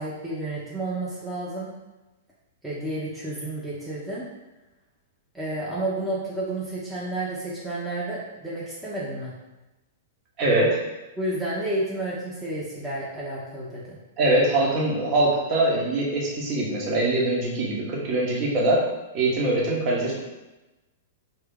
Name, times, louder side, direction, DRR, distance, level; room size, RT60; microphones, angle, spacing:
voice 1, 0.0-1.7 2.6-4.2 5.3-9.3 11.2-14.0, right 1 dB, 5° right, -8 dB, 0.9 m, -31 dB
voice 2, 10.4-10.8 14.2-18.8 19.1-20.2, right 2 dB, 35° right, -4 dB, 1.2 m, -23 dB
3.4 x 2.9 x 3.6 m, 1.1 s
figure-of-eight pair, 105°, 0 cm